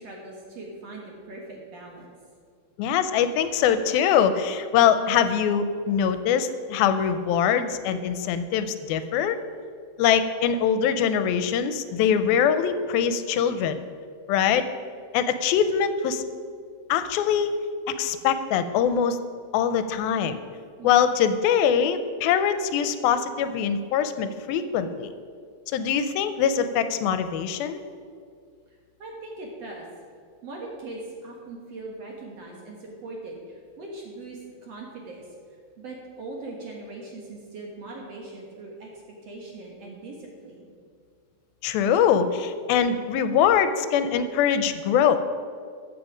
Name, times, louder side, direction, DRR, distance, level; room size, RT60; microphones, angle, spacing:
voice 1, 0.0-2.1 20.8-21.0 29.0-29.9 30.4-35.2 35.8-38.9 39.2-40.7, right 2 dB, 55° right, -1 dB, 2.1 m, -40 dB
voice 2, 2.8-9.4 10.0-13.8 14.3-14.7 15.1-16.2 16.9-17.6 17.9-19.2 19.5-20.4 20.8-25.1 25.7-27.8 41.6-45.2, left 8 dB, 85° left, 11 dB, 2.4 m, -23 dB
14.5 x 8.1 x 5.0 m, 2.2 s
omnidirectional pair, 4.3 m